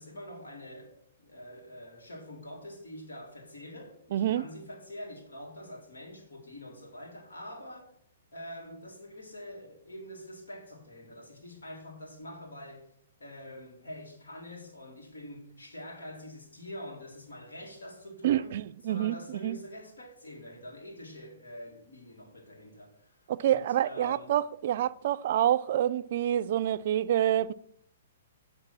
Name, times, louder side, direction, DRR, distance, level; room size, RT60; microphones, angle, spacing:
voice 1, 0.0-7.9 8.3-12.9 13.2-18.6 18.8-24.4, left 1 dB, 90° left, 2.5 m, -45 dB
voice 2, 4.1-4.4 18.2-19.2 19.4-19.6 23.3-27.5, right 11 dB, 60° right, 0.3 m, -27 dB
7.6 x 3.8 x 6.0 m
hypercardioid pair, 135°, 0 cm